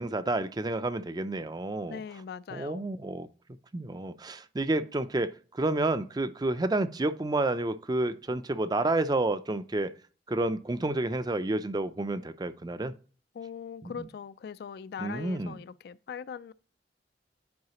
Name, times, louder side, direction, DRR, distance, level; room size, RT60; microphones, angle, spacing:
voice 1, 0.0-2.0 2.5-3.3 3.7-9.9 10.3-12.9 13.8-14.1 15.0-15.6, right 2 dB, 20° right, 0.4 m, -30 dB
voice 2, 1.9-2.9 13.3-16.5, left 7 dB, 60° left, 0.3 m, -41 dB
9.5 x 4.7 x 2.9 m
head